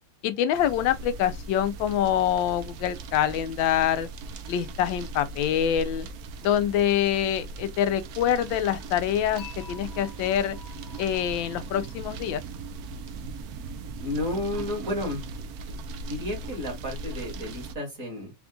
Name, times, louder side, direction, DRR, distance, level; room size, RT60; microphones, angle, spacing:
voice 1, 0.2-4.1 4.5-6.1 6.4-10.6 11.0-12.4, left 10 dB, 80° left, 1.3 m, -25 dB
sound 1, 0.5-17.7, right 3 dB, 70° right, 0.9 m, -39 dB
Dishes pots and pans / Chink clink, 9.4-12.5, left 7 dB, 65° left, 0.9 m, -49 dB
voice 2, 14.0-15.2 15.6-15.7 16.0-18.3, left 1 dB, 45° right, 1.9 m, -32 dB
4.3 x 2.3 x 3.7 m
omnidirectional pair, 2.1 m